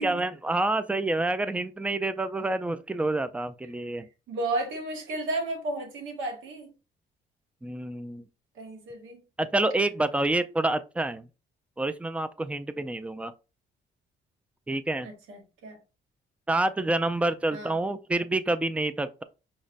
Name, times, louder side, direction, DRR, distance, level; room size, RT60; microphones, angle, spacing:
voice 1, 0.0-4.0 7.6-8.2 9.4-11.3 11.8-13.3 14.7-15.1 16.5-19.2, right 2 dB, 5° right, 0.3 m, -28 dB
voice 2, 4.3-6.7 8.6-9.2 15.0-15.8 17.5-17.7, right 2 dB, 85° right, 1.2 m, -33 dB
5.3 x 2.1 x 2.5 m
cardioid pair, 90°, 20 cm